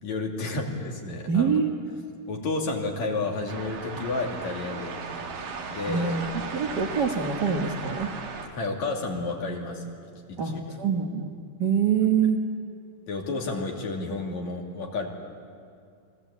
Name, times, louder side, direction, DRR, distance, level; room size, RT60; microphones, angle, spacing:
voice 1, 0.0-1.5 2.3-5.0 5.7-6.2 8.5-9.8 10.3-10.7 13.1-15.1, left 3 dB, 60° left, 0 dB, 3.9 m, -31 dB
voice 2, 1.3-1.7 5.9-6.3 6.5-8.1 10.4-11.3 11.6-12.4, right 6 dB, 60° right, 3 dB, 1.0 m, -25 dB
sound 1, 3.5-8.5, right 4 dB, 80° right, 3.8 m, -36 dB
29.5 x 21.5 x 8.4 m, 2.3 s
omnidirectional pair, 3.8 m